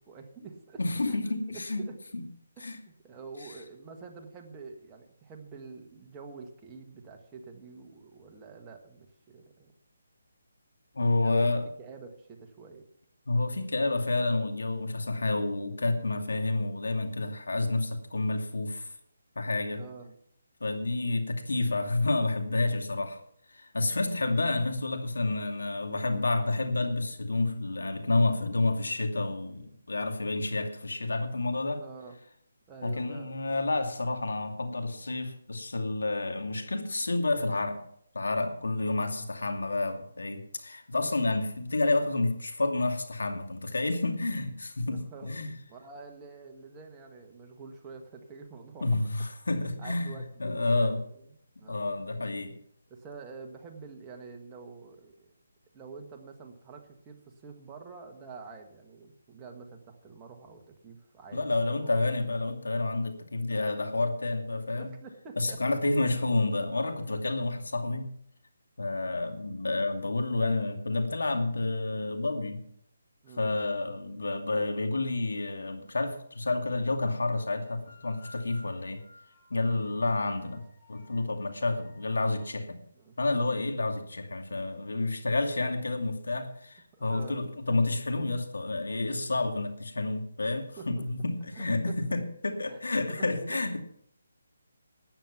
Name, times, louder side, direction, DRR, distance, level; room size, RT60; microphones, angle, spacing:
voice 1, 0.0-1.2 1.5-2.0 2.7-9.7 11.2-11.5 11.8-12.9 19.7-20.2 31.7-32.2 32.7-33.4 44.8-48.9 49.8-52.0 52.9-55.3 55.7-62.0 64.7-66.2 73.2-73.5 82.9-83.1 86.9-87.4 90.8-91.1 91.5-92.3 92.7-92.8 93.1-93.6, right 4 dB, 15° right, 2 dB, 1.5 m, -47 dB
voice 2, 0.8-1.8 2.1-2.2 2.6-2.8 10.9-11.7 13.3-18.9 19.4-19.8 20.6-23.2 23.5-31.8 32.8-37.8 38.1-45.5 48.8-51.0 51.7-52.6 61.3-64.9 65.4-68.1 68.8-72.6 73.4-79.0 79.5-82.8 83.2-93.8, left 2 dB, 85° left, 5 dB, 2.4 m, -29 dB
sound 1, 77.2-82.5, left 2 dB, 35° left, 4.4 m, -56 dB
13.0 x 9.2 x 5.9 m, 0.68 s
hypercardioid pair, 160°, 0 cm